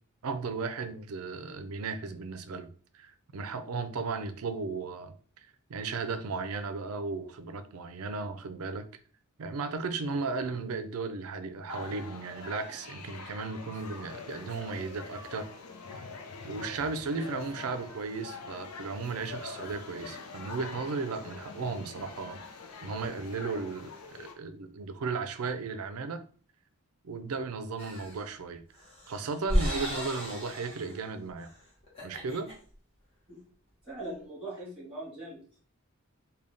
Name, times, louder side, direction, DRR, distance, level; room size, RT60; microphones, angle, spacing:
voice 1, 0.2-2.7 2.9-5.1 5.7-8.8 9.4-15.5 16.0-16.1 16.4-22.4 22.8-26.2 27.0-28.6 29.1-31.5 32.0-32.5, right 4 dB, 75° right, 10 dB, 0.5 m, -35 dB
sound 1, 11.7-24.3, left 4 dB, 85° left, 0.6 m, -45 dB
sound 2, 12.1-13.1 14.5-15.5 16.9-18.1 19.1-20.1, right 1 dB, 45° left, 1.3 m, -53 dB
sound 3, 27.8-28.2 28.8-31.0 31.4-31.5 31.8-32.5, equal, 25° left, 1.4 m, -33 dB
voice 2, 33.8-35.6, right 1 dB, 5° right, -6 dB, 1.9 m, -41 dB
3.8 x 2.2 x 3.5 m, 0.43 s
head